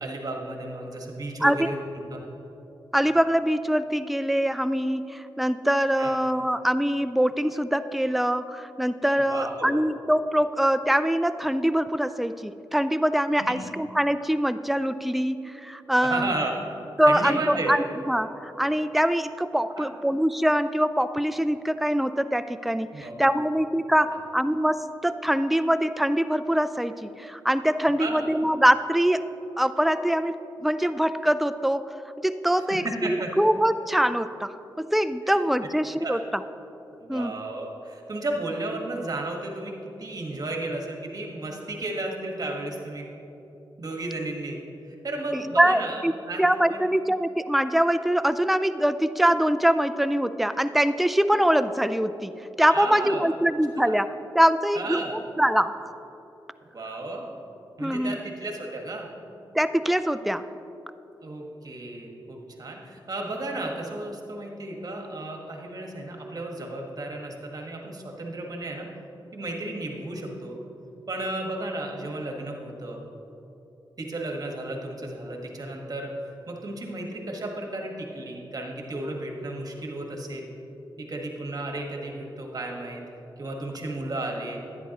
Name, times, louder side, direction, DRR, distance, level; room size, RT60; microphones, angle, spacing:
voice 1, 0.0-2.2 6.0-6.1 9.2-9.7 13.4-13.6 16.0-16.6 17.1-17.8 19.8-19.9 22.9-23.1 24.1-24.2 28.0-28.3 32.7-33.3 35.3-35.4 36.0-36.2 37.0-43.1 43.8-44.6 44.8-46.8 52.7-53.2 53.7-53.9 54.7-55.2 56.7-57.3 57.8-59.1 61.2-68.9 69.3-70.6 71.1-73.0 74.0-76.1 76.5-80.5 81.0-83.0 83.4-84.6, right 2 dB, 45° right, 1 dB, 1.5 m, -33 dB
voice 2, 2.9-16.3 17.0-29.3 29.6-32.0 32.2-36.4 37.1-37.3 45.3-46.1 46.4-52.3 52.6-55.9 57.8-58.2 59.5-60.5, equal, ahead, 12 dB, 0.3 m, -23 dB
10.5 x 9.7 x 3.0 m, 2.9 s
cardioid pair, 60°, 9 cm